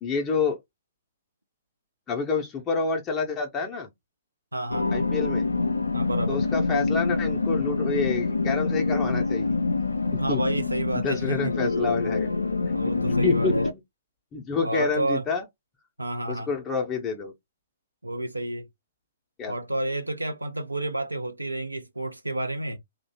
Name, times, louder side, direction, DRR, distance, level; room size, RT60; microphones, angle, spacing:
voice 1, 0.0-0.6 2.1-3.9 4.9-5.5 6.3-9.5 10.1-10.4 11.0-12.3 12.8-12.9 13.2-13.5 14.3-15.4 16.3-17.3 19.4-19.5, left 4 dB, 20° left, 0.5 m, -28 dB
voice 2, 4.5-5.1 5.9-6.4 10.2-11.7 12.7-13.6 14.6-15.3 16.0-16.5 18.0-18.7 19.5-22.8, right 1 dB, 80° right, 0.4 m, -30 dB
sound 1, 4.7-13.7, left 3 dB, 75° left, 0.3 m, -26 dB
2.6 x 2.1 x 2.7 m
figure-of-eight pair, 120°, 0 cm